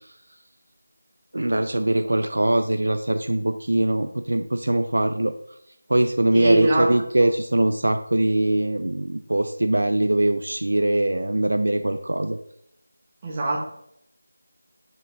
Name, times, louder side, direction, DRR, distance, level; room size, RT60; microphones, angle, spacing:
voice 1, 1.3-5.3 5.9-12.4, right 1 dB, 75° right, 8 dB, 0.5 m, -22 dB
voice 2, 6.3-7.0 13.2-13.6, right 1 dB, 25° right, -3 dB, 1.4 m, -23 dB
6.1 x 5.1 x 3.4 m, 0.73 s
figure-of-eight pair, 170°, 0 cm